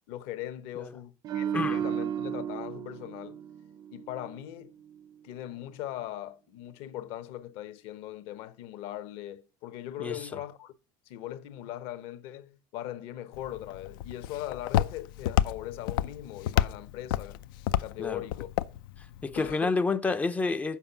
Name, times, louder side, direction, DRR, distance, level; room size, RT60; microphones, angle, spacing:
voice 1, 0.1-3.4 3.9-4.7 5.2-10.7 11.1-17.4 17.8-18.5 19.3-19.7, left 13 dB, 60° left, 0.9 m, -40 dB
sound 1, 1.2-4.5 4.8-5.1, right 9 dB, 35° right, 0.5 m, -34 dB
voice 2, 1.5-1.8 10.0-10.4 18.0-18.2 19.2-20.8, left 3 dB, 15° left, 0.4 m, -29 dB
Walk footsteps, 13.3-19.5, left 12 dB, 85° left, 0.5 m, -30 dB
7.2 x 5.2 x 7.0 m
supercardioid pair, 135°, 11 cm